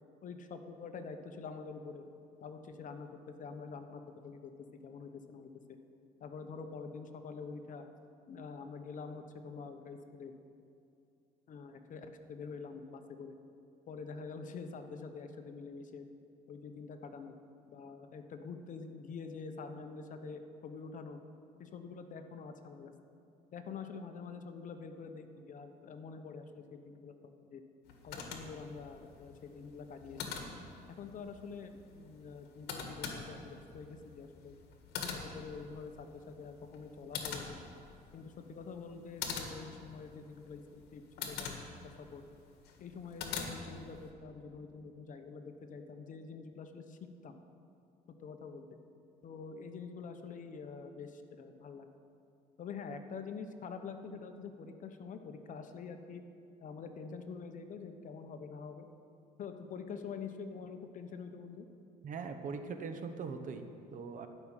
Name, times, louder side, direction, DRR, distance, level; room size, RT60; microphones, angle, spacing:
voice 1, 0.2-2.0 2.4-5.8 6.2-7.9 8.3-10.3 11.5-13.4 13.9-16.1 16.5-17.3 17.7-21.2 21.6-22.9 23.5-27.6 28.0-30.2 31.0-34.5 35.0-37.7 38.1-41.7 42.0-42.2 42.8-47.4 48.2-48.7 49.2-51.9 52.6-56.2 56.6-58.9 59.4-61.7, left 5 dB, 50° left, 7 dB, 1.0 m, -46 dB
sound 1, 27.9-44.1, left 5 dB, 75° left, 1.7 m, -45 dB
voice 2, 62.0-64.3, right 5 dB, 50° right, 7 dB, 1.0 m, -41 dB
12.5 x 6.0 x 9.0 m, 2.6 s
cardioid pair, 110°, 17 cm